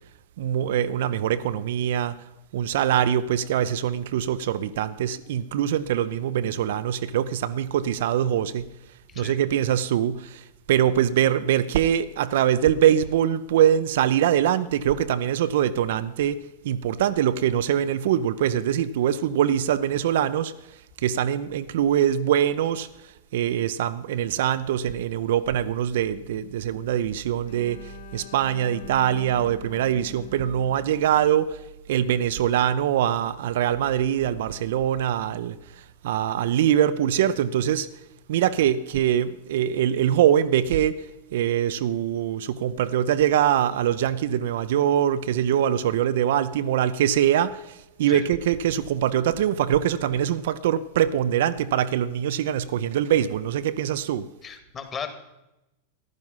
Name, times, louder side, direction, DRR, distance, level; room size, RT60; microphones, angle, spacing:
voice 1, 0.4-2.2 2.5-8.7 9.2-20.5 21.0-31.6 31.9-37.9 38.3-41.1 41.3-54.3, right 10 dB, 55° right, 0.6 m, -23 dB
Bowed string instrument, 27.5-31.5, left 15 dB, 55° left, 1.5 m, -45 dB
voice 2, 54.4-55.1, left 7 dB, 25° left, 2.1 m, -35 dB
15.0 x 11.5 x 5.5 m
figure-of-eight pair, 90°, 0 cm